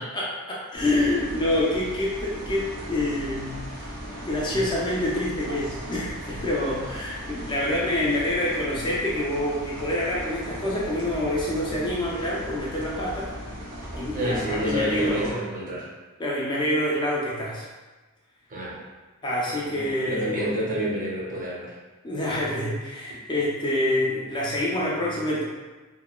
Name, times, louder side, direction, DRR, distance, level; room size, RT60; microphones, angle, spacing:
voice 1, 0.0-3.6 4.3-13.3 13.9-15.4 16.2-17.6 19.2-20.5 22.0-25.4, left 1 dB, 20° left, -5 dB, 0.4 m, -27 dB
sound 1, 0.7-15.3, equal, 85° right, 1.1 m, -38 dB
voice 2, 14.1-15.9 18.5-18.8 19.6-21.7, equal, 40° right, -5 dB, 0.6 m, -29 dB
2.8 x 2.2 x 2.2 m, 1.2 s
head